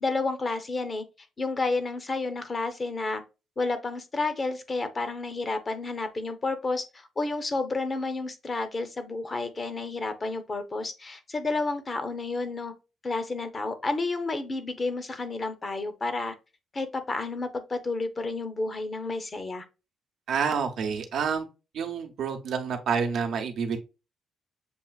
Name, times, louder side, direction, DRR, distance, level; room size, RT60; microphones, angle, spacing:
voice 1, 0.0-1.0 1.4-3.2 3.6-12.7 13.0-16.3 16.7-19.6, left 3 dB, 30° left, 0.7 m, -30 dB
voice 2, 20.3-21.5 21.7-23.8, right 6 dB, 70° right, 0.8 m, -28 dB
6.9 x 2.4 x 2.3 m
cardioid pair, 90°, 0 cm